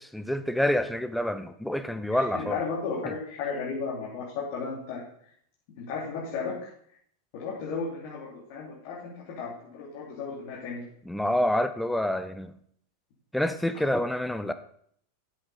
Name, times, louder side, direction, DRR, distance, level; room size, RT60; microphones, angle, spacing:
voice 1, 0.0-2.6 11.0-12.5 13.3-14.5, left 1 dB, ahead, 10 dB, 0.7 m, -27 dB
voice 2, 2.3-5.1 5.8-6.5 7.3-10.8, left 5 dB, 45° left, -6 dB, 3.2 m, -34 dB
12.0 x 7.8 x 4.2 m, 0.65 s
figure-of-eight pair, 90°, 0 cm